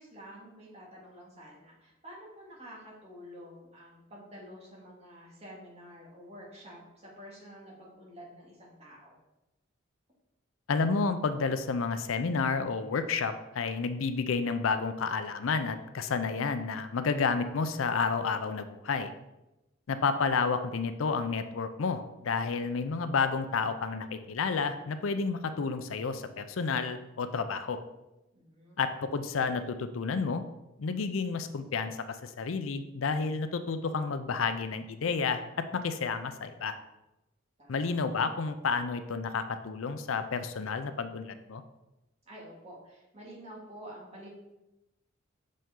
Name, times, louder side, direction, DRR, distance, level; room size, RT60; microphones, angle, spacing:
voice 1, 0.0-9.2 28.3-28.9 37.6-37.8 42.3-44.3, equal, 30° right, -5 dB, 2.2 m, -49 dB
voice 2, 10.7-19.1 19.9-27.8 28.8-30.4 30.8-36.8 37.7-41.6, left 4 dB, 80° left, 10 dB, 0.5 m, -30 dB
6.7 x 5.3 x 3.7 m, 0.97 s
head